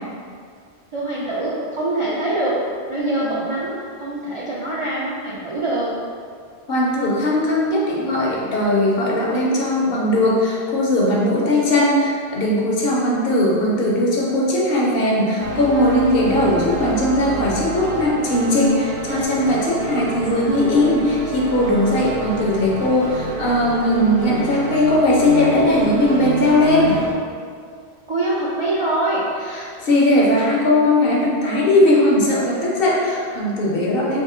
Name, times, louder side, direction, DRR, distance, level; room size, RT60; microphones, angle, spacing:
voice 1, 0.9-2.6 2.9-3.7 4.0-5.9 28.1-29.3, right 2 dB, 45° right, -8 dB, 0.4 m, -23 dB
voice 2, 6.7-27.0 29.5-34.2, left 1 dB, 65° left, -4 dB, 0.9 m, -18 dB
sound 1, 15.4-27.1, right 2 dB, 75° right, 0.8 m, -29 dB
2.8 x 2.6 x 3.7 m, 2.1 s
omnidirectional pair, 1.1 m